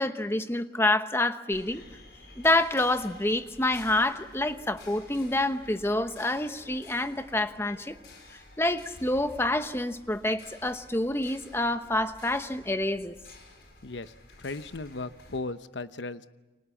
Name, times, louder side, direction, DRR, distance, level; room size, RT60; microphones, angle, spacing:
voice 1, 0.0-1.8 2.4-8.0 8.6-13.2, left 1 dB, 15° left, 1.0 m, -27 dB
sound 1, 1.5-15.4, left 2 dB, 70° left, 4.8 m, -51 dB
voice 2, 13.8-14.1 14.4-16.3, left 3 dB, 90° left, 1.0 m, -36 dB
29.5 x 24.5 x 7.2 m
head